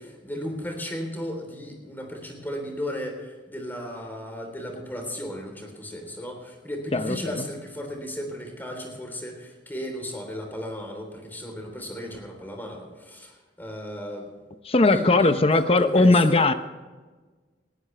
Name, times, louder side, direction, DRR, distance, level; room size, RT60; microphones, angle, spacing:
voice 1, 0.0-14.3 14.9-16.4, equal, 10° left, 2 dB, 3.5 m, -35 dB
voice 2, 6.9-7.5 14.7-16.5, left 2 dB, 35° left, 10 dB, 0.7 m, -19 dB
20.0 x 15.5 x 3.3 m, 1.3 s
head